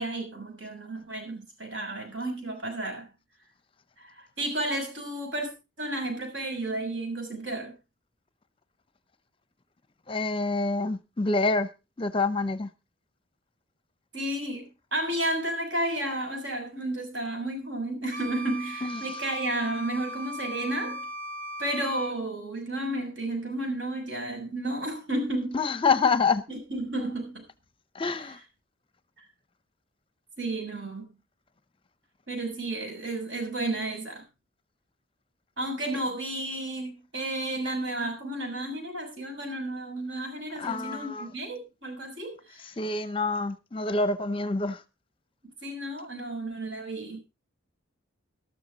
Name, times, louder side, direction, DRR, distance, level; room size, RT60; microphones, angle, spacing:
voice 1, 0.0-3.1 4.0-5.5 5.8-7.7 14.1-21.0 21.6-25.6 26.5-27.4 28.1-28.4 29.2-29.3 30.4-31.1 32.3-34.2 35.6-42.7 45.6-47.2, right 1 dB, 70° right, 6.9 m, -32 dB
voice 2, 10.1-11.7 12.0-12.7 18.8-18.9 25.5-26.4 28.0-28.4 40.6-41.3 42.8-44.8, left 3 dB, 25° left, 0.6 m, -26 dB
Wind instrument woodwind instrument, 18.1-22.2, equal, 45° right, 1.1 m, -38 dB
13.5 x 13.0 x 4.0 m
head